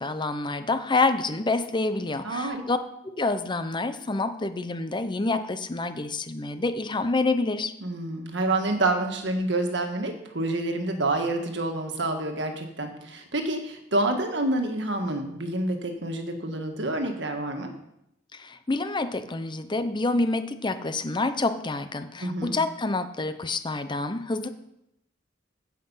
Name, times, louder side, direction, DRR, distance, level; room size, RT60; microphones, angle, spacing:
voice 1, 0.0-2.8 3.0-7.7 18.3-24.5, left 3 dB, 25° left, 11 dB, 0.7 m, -27 dB
voice 2, 2.2-2.6 7.8-17.7 22.2-22.6, right 2 dB, 65° right, 4 dB, 1.7 m, -28 dB
15.5 x 5.9 x 5.6 m, 0.82 s
head